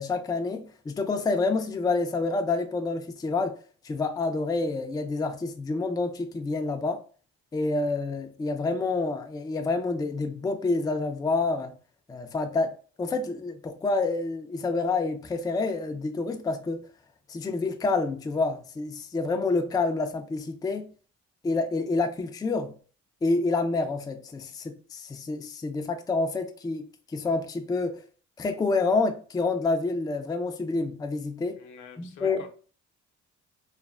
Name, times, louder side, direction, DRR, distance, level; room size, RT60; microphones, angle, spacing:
voice 1, 0.0-3.5 3.8-7.0 7.5-11.7 12.1-16.8 17.3-20.9 21.4-22.7 23.2-26.8 27.1-28.0 28.4-31.6 32.0-32.4, left 3 dB, 15° left, 0.3 m, -28 dB
voice 2, 31.6-32.5, left 5 dB, 75° left, 0.7 m, -46 dB
3.2 x 2.1 x 2.3 m
cardioid pair, 90°, 30 cm